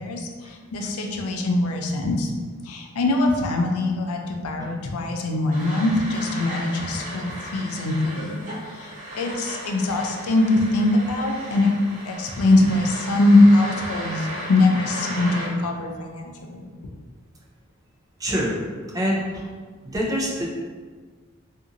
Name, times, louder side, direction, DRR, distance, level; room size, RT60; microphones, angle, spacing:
voice 1, 0.0-2.3 2.6-8.4 8.7-11.8 12.0-16.6, left 2 dB, 90° left, 2 dB, 0.4 m, -22 dB
sound 1, 5.5-15.4, equal, 35° right, 0.8 m, -35 dB
voice 2, 18.2-18.6 18.9-19.4 19.8-20.7, equal, 15° right, -3 dB, 0.4 m, -26 dB
2.8 x 2.5 x 2.5 m, 1.5 s
head